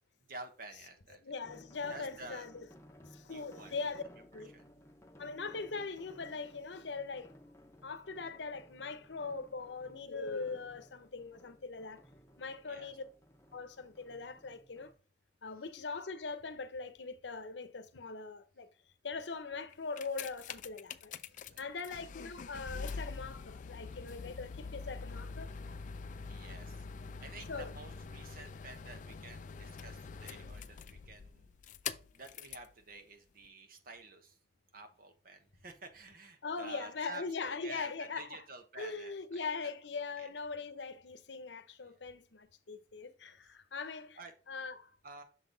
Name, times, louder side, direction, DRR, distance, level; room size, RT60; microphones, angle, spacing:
voice 1, 0.3-1.2 1.9-2.5 3.2-3.7 4.3-4.7 12.6-12.9 21.5-21.6 26.3-31.5 32.1-34.4 34.7-39.7 40.2-40.3 41.8-42.0 43.2-43.4 44.2-44.3 45.0-45.2, right 3 dB, 55° right, 1.1 m, -51 dB
voice 2, 1.2-2.6 3.1-4.0 4.3-4.5 5.2-7.3 7.8-12.0 12.4-13.0 13.5-14.9 15.4-18.7 19.0-21.1 21.6-25.5 27.5-27.7 36.4-38.4 38.8-44.2 44.5-44.9, left 4 dB, 85° left, 0.8 m, -41 dB
sound 1, 1.4-15.0, equal, 15° left, 0.9 m, -58 dB
sound 2, 19.7-32.7 33.4-33.5, left 5 dB, 45° left, 0.4 m, -45 dB
6.7 x 4.0 x 3.9 m
head